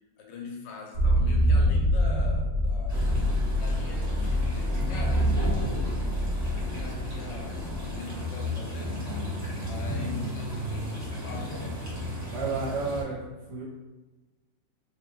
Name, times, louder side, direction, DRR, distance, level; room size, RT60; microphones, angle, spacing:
voice 1, 0.2-3.1 3.6-6.1 6.6-9.1 9.5-11.9, left 3 dB, 85° left, 1 dB, 1.3 m, -42 dB
sound 1, 0.9-8.0, equal, 45° right, 1.1 m, -26 dB
sound 2, 2.9-13.0, equal, 25° right, 0.4 m, -34 dB
voice 2, 12.2-13.2 13.5-13.6, right 4 dB, 75° right, -4 dB, 1.3 m, -31 dB
3.1 x 2.2 x 3.0 m, 1.1 s
omnidirectional pair, 1.9 m